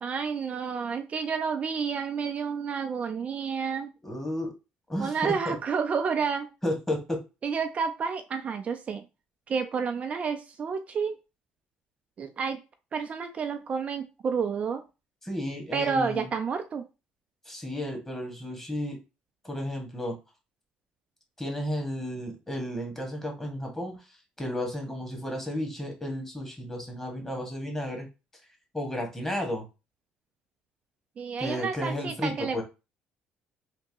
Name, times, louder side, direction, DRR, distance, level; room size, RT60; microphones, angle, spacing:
voice 1, 0.0-3.9 5.0-6.5 7.4-9.0 9.5-11.1 12.2-12.6 12.9-14.8 15.7-16.8 31.2-32.6, right 6 dB, 40° right, 6 dB, 0.4 m, -30 dB
voice 2, 4.0-4.5 4.9-5.6 6.6-7.2 15.2-16.3 17.4-19.0 19.4-20.1 21.4-28.1 28.7-29.6 31.4-32.6, left 1 dB, 10° left, 2 dB, 1.5 m, -33 dB
3.4 x 2.8 x 2.8 m, 0.28 s
supercardioid pair, 90°, 3 cm